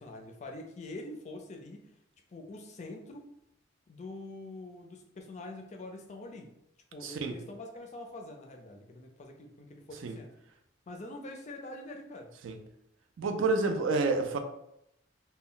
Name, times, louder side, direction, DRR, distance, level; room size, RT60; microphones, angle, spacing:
voice 1, 0.0-1.8 2.3-3.3 3.9-6.5 6.9-10.3 10.9-12.4, left 2 dB, 35° left, 0.4 m, -45 dB
voice 2, 7.0-7.3 10.0-10.2 12.4-12.6 13.2-14.4, right 3 dB, 85° right, 0.4 m, -29 dB
2.1 x 2.0 x 3.7 m
head